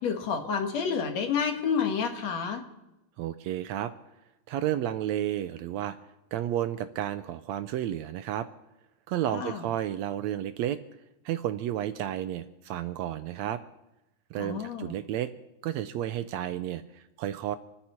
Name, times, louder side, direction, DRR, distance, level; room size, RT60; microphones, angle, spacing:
voice 1, 0.0-2.6 9.3-9.6 14.4-15.0, left 6 dB, 65° left, 5 dB, 2.7 m, -29 dB
voice 2, 3.2-3.9 4.5-6.0 6.3-8.5 9.1-10.8 11.3-13.6 14.3-15.3 15.6-17.6, right 11 dB, 75° right, 11 dB, 1.7 m, -31 dB
27.5 x 9.9 x 4.4 m, 0.93 s
omnidirectional pair, 3.4 m